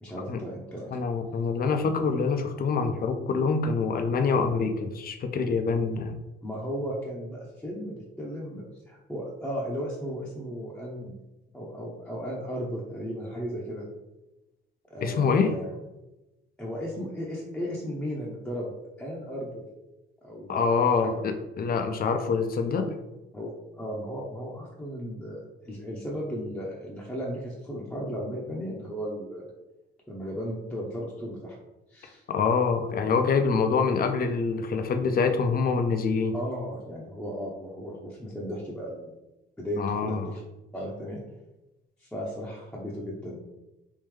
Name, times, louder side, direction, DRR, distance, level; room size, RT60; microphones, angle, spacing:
voice 1, 0.0-1.0 6.4-11.2 11.5-13.9 14.9-15.7 16.6-18.7 19.0-19.6 20.2-20.7 21.0-21.2 23.3-29.5 30.1-31.6 31.9-32.2 33.7-33.9 36.3-39.1 39.6-40.4 40.7-41.2 42.0-43.4, equal, 5° left, -4 dB, 0.7 m, -35 dB
voice 2, 0.9-6.2 15.0-15.6 20.5-22.9 32.3-36.4 39.8-40.3, left 5 dB, 50° left, 7 dB, 0.5 m, -25 dB
3.6 x 2.6 x 3.2 m, 1.0 s
cardioid pair, 90°, 20 cm